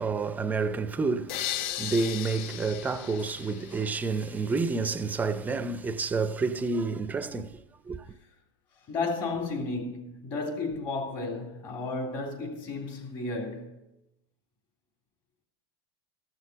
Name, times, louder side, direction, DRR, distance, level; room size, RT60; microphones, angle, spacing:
voice 1, 0.0-8.1, right 4 dB, 15° right, 0.5 m, -29 dB
sound 1, 1.3-4.3, left 12 dB, 55° left, 0.6 m, -36 dB
voice 2, 8.9-13.8, left 3 dB, 40° left, 3.3 m, -33 dB
14.5 x 6.6 x 6.8 m
supercardioid pair, 140°, 13 cm